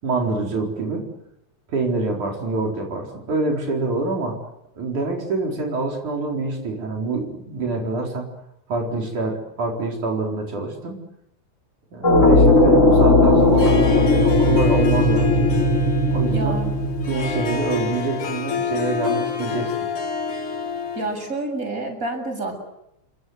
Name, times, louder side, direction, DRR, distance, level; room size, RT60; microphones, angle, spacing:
voice 1, 0.0-1.0 1.7-4.4 4.8-8.3 8.7-11.0 11.9-15.5 16.1-16.6 17.1-19.7, right 3 dB, 80° right, 0 dB, 5.8 m, -26 dB
sound 1, 12.0-17.9, left 2 dB, 25° left, 3.6 m, -17 dB
Harp, 13.4-21.3, left 6 dB, 50° left, 2.6 m, -29 dB
voice 2, 16.3-16.7 21.0-22.6, right 2 dB, 25° right, 3 dB, 7.7 m, -28 dB
30.0 x 24.5 x 8.1 m, 0.84 s
omnidirectional pair, 3.4 m